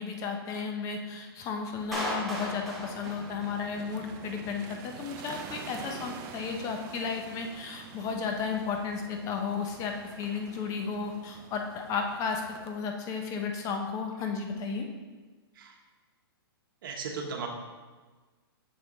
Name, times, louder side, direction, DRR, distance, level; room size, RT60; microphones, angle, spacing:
voice 1, 0.0-14.9, left 5 dB, 25° left, 3 dB, 0.8 m, -33 dB
sound 1, 1.7-12.7, right 6 dB, 30° right, 0.6 m, -47 dB
Clapping, 1.9-3.9, equal, ahead, 1.2 m, -36 dB
voice 2, 16.8-17.5, right 5 dB, 60° right, 2 dB, 1.3 m, -36 dB
6.9 x 5.7 x 4.0 m, 1.3 s
hypercardioid pair, 145°, 13 cm